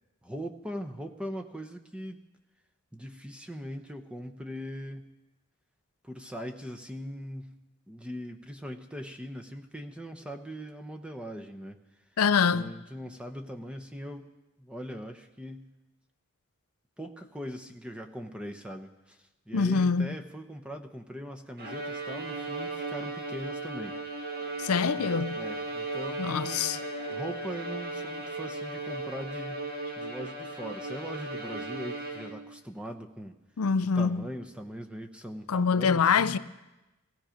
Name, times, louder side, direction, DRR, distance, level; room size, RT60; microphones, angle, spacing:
voice 1, 0.2-2.2 2.9-5.1 6.0-7.5 7.9-11.8 12.5-14.3 14.6-15.6 17.0-24.0 25.0-25.1 25.3-26.8 27.1-29.6 30.0-33.4 33.8-36.4, equal, 5° right, 0.8 m, -40 dB
voice 2, 12.2-12.7 19.5-20.2 24.6-25.4 26.2-26.8 33.6-34.2 35.5-36.4, left 5 dB, 70° left, 0.5 m, -25 dB
Bowed string instrument, 21.6-32.6, right 2 dB, 45° right, 1.8 m, -36 dB
16.5 x 16.5 x 5.1 m
head